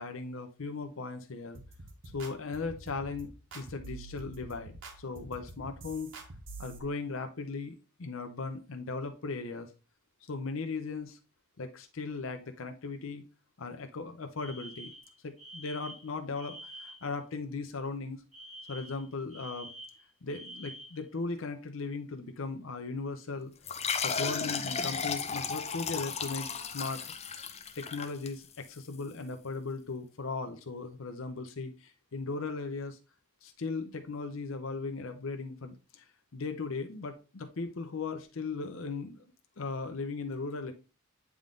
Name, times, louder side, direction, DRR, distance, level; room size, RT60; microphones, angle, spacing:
voice 1, 0.0-1.6 2.1-6.1 6.6-9.7 10.3-11.2 11.6-13.2 13.6-14.9 15.2-18.2 18.7-19.7 20.2-23.5 24.0-27.0 27.7-33.0 33.4-36.1 36.3-39.3 39.6-40.7, left 4 dB, 65° left, 6 dB, 0.7 m, -37 dB
sound 1, 1.5-6.8, right 2 dB, 60° right, 1.4 m, -47 dB
Alarm, 14.4-17.1 18.3-21.0, equal, 5° right, 1.4 m, -48 dB
sound 2, 23.6-28.8, left 5 dB, 30° left, 0.6 m, -34 dB
8.7 x 3.6 x 3.8 m, 0.32 s
head